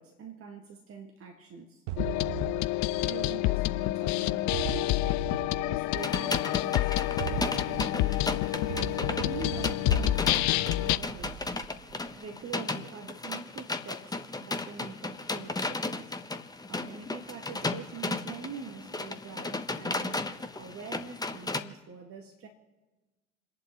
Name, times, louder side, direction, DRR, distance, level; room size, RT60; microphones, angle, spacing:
voice 1, 0.0-1.8 3.1-5.2 5.6-6.9 7.2-11.7 12.1-16.2 16.7-22.5, right 5 dB, 35° right, 2 dB, 1.9 m, -44 dB
sound 1, 1.9-4.0 4.5-6.3 7.0-12.1, right 11 dB, 50° right, 0.7 m, -40 dB
sound 2, 2.0-11.0, left 18 dB, 45° left, 0.5 m, -28 dB
sound 3, 6.0-21.6, left 2 dB, 10° left, 1.0 m, -35 dB
29.5 x 11.0 x 3.1 m, 1.2 s
figure-of-eight pair, 60°, 39 cm